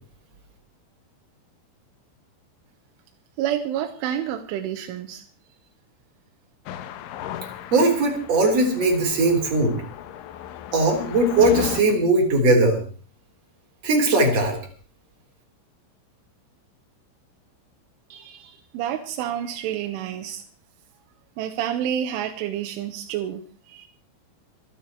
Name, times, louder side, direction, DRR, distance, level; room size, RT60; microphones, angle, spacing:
voice 1, 3.4-5.2 18.1-20.4 21.4-23.9, right 10 dB, 85° right, 5 dB, 3.5 m, -29 dB
sound 1, 6.7-11.8, left 10 dB, 80° left, 3.5 m, -35 dB
voice 2, 7.7-9.8 10.7-12.8 13.8-14.6, right 2 dB, 35° right, 2 dB, 4.3 m, -19 dB
25.5 x 10.0 x 4.6 m, 0.41 s
omnidirectional pair, 5.5 m